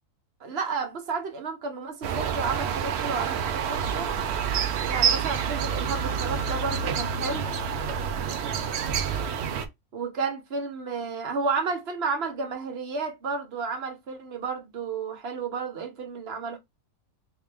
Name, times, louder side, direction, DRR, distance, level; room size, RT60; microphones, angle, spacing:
voice 1, 0.4-4.1 4.8-7.4 9.9-16.6, right 4 dB, 50° right, 1.0 m, -32 dB
sound 1, 2.0-9.7, right 7 dB, 70° right, 0.6 m, -28 dB
3.2 x 2.9 x 3.4 m
omnidirectional pair, 1.6 m